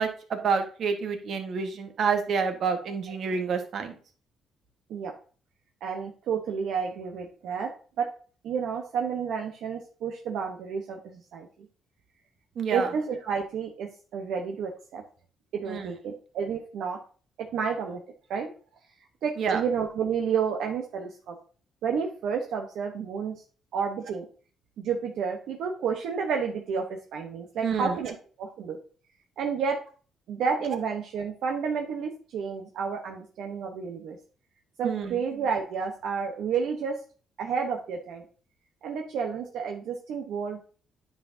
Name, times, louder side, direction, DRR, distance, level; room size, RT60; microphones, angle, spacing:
voice 1, 0.0-3.9 12.6-12.9 15.7-15.9 19.4-19.6 27.6-27.9 34.8-35.2, right 5 dB, 55° right, 6 dB, 1.4 m, -28 dB
voice 2, 5.8-7.7 8.0-8.1 8.4-11.5 12.7-15.0 15.5-17.0 17.4-18.0 18.3-18.5 19.2-21.3 21.8-23.3 23.7-24.2 24.8-28.8 29.4-29.8 30.3-34.2 34.8-37.0 37.4-38.2 38.8-40.6, right 6 dB, 75° right, 2 dB, 1.0 m, -30 dB
9.7 x 5.8 x 2.7 m, 0.40 s
cardioid pair, 130°, 0 cm